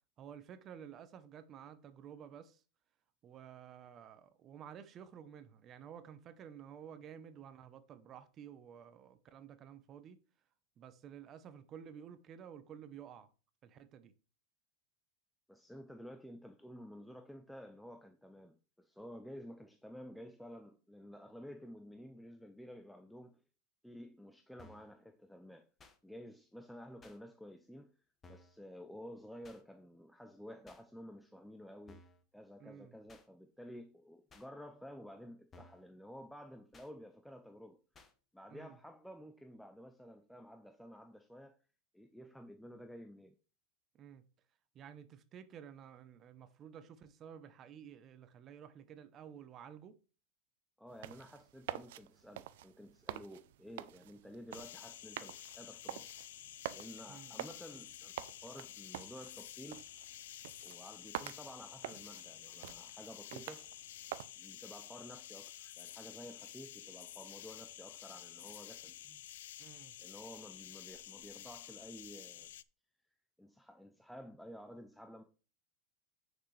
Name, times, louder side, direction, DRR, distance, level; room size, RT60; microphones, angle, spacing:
voice 1, 0.2-2.6 3.2-10.2 10.8-13.3 13.6-14.1 32.6-33.0 38.5-38.8 43.9-44.2 44.7-50.0 57.1-57.4 69.6-69.9, right 8 dB, 30° right, 0.8 m, -52 dB
voice 2, 15.5-23.4 23.8-25.7 26.0-27.9 28.3-32.1 32.3-37.8 38.3-41.6 41.9-43.4 50.8-56.2 56.7-59.8 60.6-63.7 64.4-69.2 70.0-72.5 73.4-75.2, equal, ahead, 0.5 m, -52 dB
sound 1, 24.6-24.9 25.8-26.0 27.0-27.2 28.2-28.6 29.4-29.6 30.7-30.8 31.9-32.2 33.1-33.3 34.3-34.5 35.5-35.9 36.7-36.9 37.9-38.1, left 2 dB, 20° left, 1.0 m, -59 dB
sound 2, 50.9-64.3, right 13 dB, 75° right, 0.5 m, -48 dB
sound 3, 54.5-72.6, left 13 dB, 85° left, 0.4 m, -51 dB
9.3 x 6.1 x 3.3 m
supercardioid pair, 150°, 0 cm